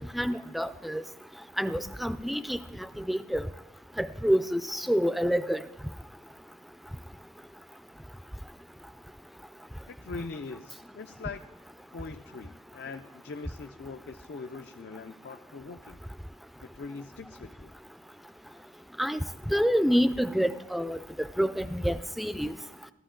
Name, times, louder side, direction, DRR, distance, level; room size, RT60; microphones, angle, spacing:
voice 1, 0.1-1.0 1.6-2.6 3.0-3.5 4.0-5.6 19.0-22.5, equal, ahead, 12 dB, 0.3 m, -27 dB
voice 2, 9.9-11.4 11.9-16.0 16.6-17.7, left 4 dB, 70° left, 7 dB, 0.4 m, -42 dB
14.0 x 13.5 x 3.8 m, 1.1 s
head